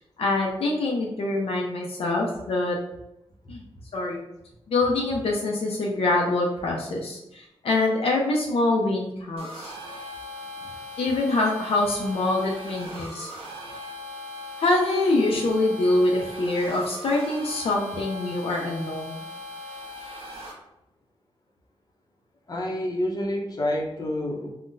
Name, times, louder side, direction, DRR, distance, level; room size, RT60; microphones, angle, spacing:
voice 1, 0.2-2.8 3.5-3.6 3.9-4.2 4.7-9.7 11.0-13.3 14.6-19.2, left 2 dB, 75° left, -1 dB, 0.5 m, -25 dB
sound 1, 9.4-20.5, left 2 dB, 70° right, 0.7 m, -39 dB
voice 2, 22.5-24.5, left 1 dB, 40° left, -1 dB, 0.7 m, -28 dB
3.7 x 2.1 x 2.5 m, 0.87 s
cardioid pair, 75°, 10 cm